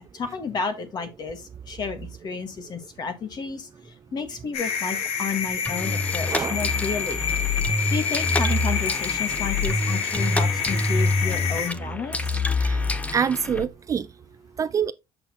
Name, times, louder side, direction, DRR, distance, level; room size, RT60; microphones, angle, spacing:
voice 1, 0.1-3.7 4.1-7.2 7.9-12.2, left 5 dB, 40° left, 1.5 m, -31 dB
sound 1, 4.5-11.7, left 7 dB, 75° left, 1.8 m, -28 dB
sound 2, 5.6-13.6, left 2 dB, 15° left, 0.7 m, -26 dB
voice 2, 6.3-6.7 12.6-12.8 13.1-14.1 14.6-14.9, right 7 dB, 30° right, 0.3 m, -26 dB
6.8 x 6.0 x 2.8 m
cardioid pair, 105°, 10 cm